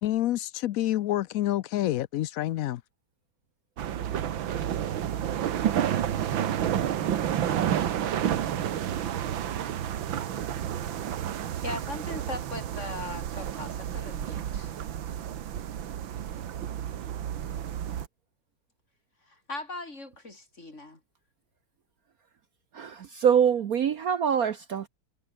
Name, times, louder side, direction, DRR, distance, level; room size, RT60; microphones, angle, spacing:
voice 1, 0.0-2.8, left 14 dB, 80° left, 0.8 m, -28 dB
sound 1, 3.8-18.1, right 10 dB, 85° right, 2.0 m, -30 dB
voice 2, 11.6-14.7 19.3-21.0, left 2 dB, 35° left, 4.9 m, -39 dB
voice 3, 22.7-24.9, right 8 dB, 55° right, 1.2 m, -24 dB
omnidirectional pair, 2.1 m